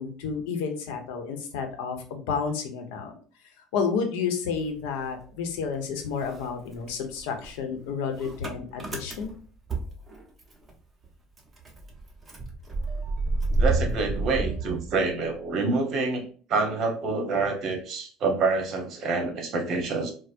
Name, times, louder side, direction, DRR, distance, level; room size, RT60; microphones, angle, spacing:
voice 1, 0.0-3.1 3.7-9.3, left 6 dB, 85° left, 5 dB, 0.8 m, -31 dB
Motor vehicle (road) / Engine starting, 4.5-5.8 6.1-10.7 11.0-11.1 11.4-15.5, right 3 dB, 20° right, 0.8 m, -31 dB
voice 2, 13.6-16.2 16.5-20.1, right 3 dB, 50° right, 4 dB, 1.0 m, -27 dB
4.5 x 2.0 x 2.5 m, 0.41 s
cardioid pair, 120°, 0 cm